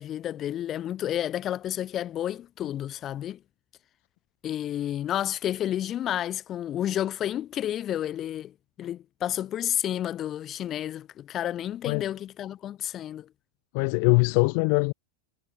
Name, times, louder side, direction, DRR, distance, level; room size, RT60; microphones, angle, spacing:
voice 1, 0.0-3.4 4.4-8.5 8.8-13.3, left 11 dB, 30° left, 1.2 m, -31 dB
voice 2, 13.7-14.9, left 37 dB, 45° left, 0.5 m, -22 dB
figure-of-eight pair, 90°, 0 cm